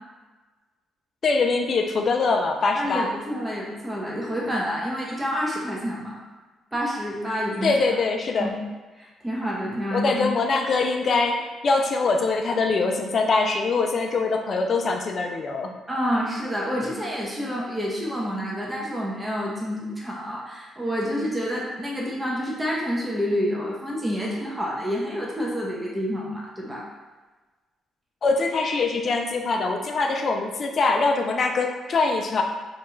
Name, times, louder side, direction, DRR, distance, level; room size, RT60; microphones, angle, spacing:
voice 1, 1.2-3.1 7.6-8.5 9.9-15.7 28.2-32.4, left 3 dB, 50° left, 3 dB, 0.3 m, -23 dB
voice 2, 2.7-6.1 6.7-7.8 8.4-8.5 9.0-10.2 15.9-26.9, equal, 15° right, -4 dB, 0.5 m, -28 dB
2.3 x 2.1 x 3.0 m, 1.3 s
cardioid pair, 90°, 0 cm